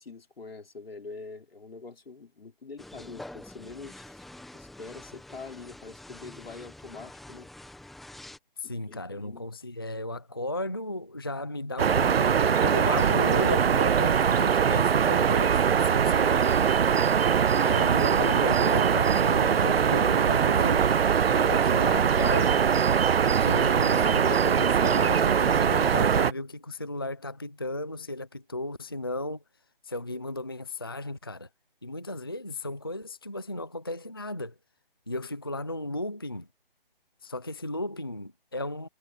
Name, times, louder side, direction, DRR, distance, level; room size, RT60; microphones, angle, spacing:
voice 1, 0.0-4.3 4.5-7.5 8.6-9.5, left 4 dB, 80° left, 4.1 m, -45 dB
sound 1, 2.8-8.4, left 1 dB, ahead, 1.2 m, -46 dB
voice 2, 8.6-16.6 17.6-20.9 21.3-22.7 23.2-29.4 29.8-31.5 31.8-34.5 35.1-36.5 37.2-38.9, left 1 dB, 25° left, 0.5 m, -35 dB
sound 2, 11.8-26.3, right 7 dB, 90° right, 0.6 m, -22 dB
hypercardioid pair, 175°, 29 cm